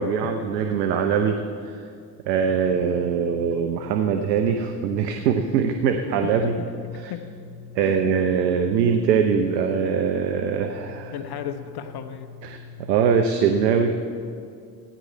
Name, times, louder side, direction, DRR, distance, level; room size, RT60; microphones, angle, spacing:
voice 1, 0.0-1.8 2.3-6.6 7.7-11.1 12.4-14.0, right 6 dB, 85° right, 6 dB, 0.8 m, -22 dB
sound 1, 2.4-12.8, left 6 dB, 45° right, 2.7 m, -43 dB
voice 2, 6.4-7.2 7.8-8.0 11.1-12.3, left 9 dB, 50° left, 9 dB, 1.1 m, -36 dB
15.0 x 9.6 x 4.5 m, 2.4 s
hypercardioid pair, 60°, 50 cm